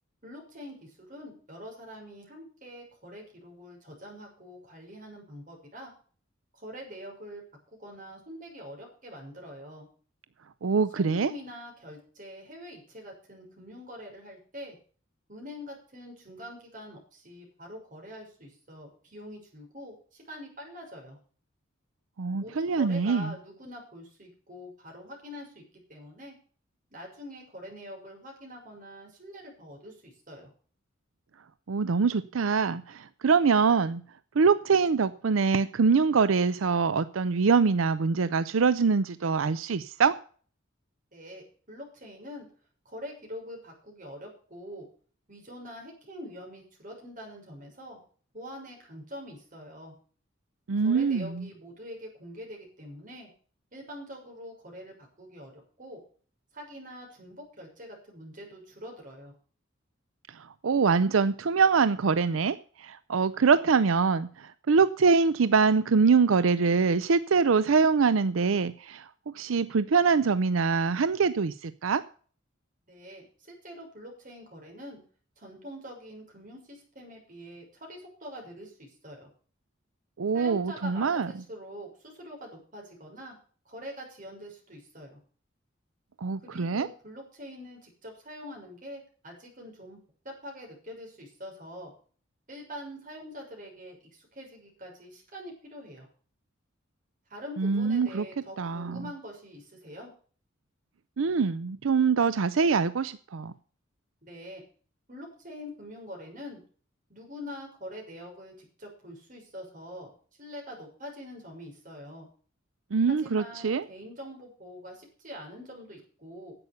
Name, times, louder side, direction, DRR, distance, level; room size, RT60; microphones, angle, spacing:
voice 1, 0.2-5.9 6.5-7.4 7.8-9.9 10.9-14.8 15.3-21.2 22.4-25.6 25.9-26.4 26.9-30.5 41.1-42.5 42.8-44.9 45.3-48.0 48.3-49.9 50.8-53.3 53.7-55.5 55.8-56.0 56.5-59.3 72.9-75.0 75.4-79.3 80.3-83.4 83.6-85.2 86.4-90.0 90.2-91.9 92.5-96.1 97.3-100.1 104.2-104.6 105.1-106.6 107.1-112.3 113.1-116.5, equal, 45° right, 6.1 m, -44 dB
voice 2, 10.6-11.3 22.2-23.3 31.7-34.0 34.4-40.2 50.7-51.5 60.3-72.0 80.2-81.3 86.2-86.9 97.6-98.2 98.6-99.0 101.2-103.5 112.9-113.8, right 5 dB, 90° right, 0.5 m, -24 dB
11.0 x 8.4 x 6.8 m
head